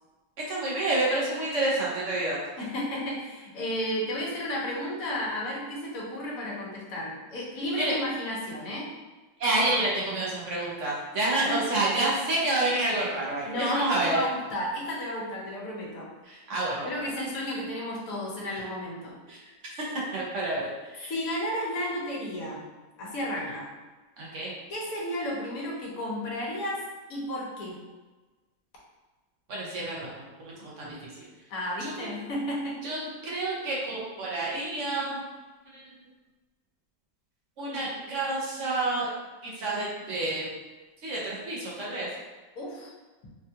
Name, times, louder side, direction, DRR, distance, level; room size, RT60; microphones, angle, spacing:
voice 1, 0.5-2.4 7.8-7.9 9.4-14.2 16.3-17.1 18.5-18.6 19.3-19.4 20.1-21.1 24.2-24.5 29.5-30.1 30.4-31.0 31.8-31.9 32.8-35.2 35.7-35.8 37.6-39.1 39.4-40.6 41.0-42.1, right 2 dB, 60° right, -5 dB, 1.0 m, -29 dB
voice 2, 2.6-8.9 11.5-11.6 13.4-16.1 16.8-19.2 21.1-22.6 23.0-23.7 24.7-26.8 27.1-27.8 31.5-32.8 42.6-42.9, left 1 dB, 70° left, -4 dB, 1.2 m, -32 dB
3.5 x 2.3 x 2.7 m, 1.2 s
omnidirectional pair, 1.6 m